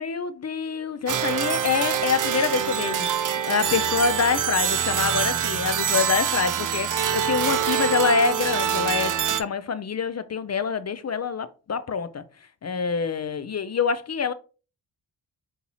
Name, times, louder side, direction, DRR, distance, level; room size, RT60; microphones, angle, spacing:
voice 1, 0.0-12.2 12.6-14.3, left 5 dB, 35° left, 0.4 m, -26 dB
sound 1, 1.1-9.4, right 9 dB, 40° right, 0.5 m, -25 dB
5.1 x 2.8 x 2.9 m
cardioid pair, 55°, 50 cm